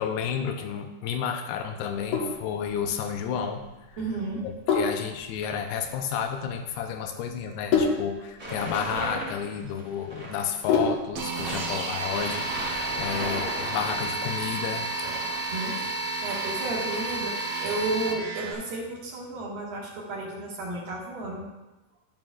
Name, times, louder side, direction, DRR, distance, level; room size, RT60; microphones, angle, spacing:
voice 1, 0.0-4.0 4.4-14.9, left 7 dB, 80° left, 5 dB, 2.6 m, -31 dB
Sink (filling or washing), 1.8-11.3, left 5 dB, 65° left, 2.3 m, -30 dB
voice 2, 4.0-4.4 15.5-15.7 16.2-17.4 17.6-21.4, right 2 dB, 65° right, -4 dB, 3.1 m, -32 dB
sound 1, 8.4-10.6 11.4-14.5 15.0-15.6, right 1 dB, 45° right, 0.6 m, -36 dB
sound 2, 11.2-18.5, right 3 dB, 85° right, 1.4 m, -31 dB
11.0 x 8.8 x 2.4 m, 1.1 s
omnidirectional pair, 4.7 m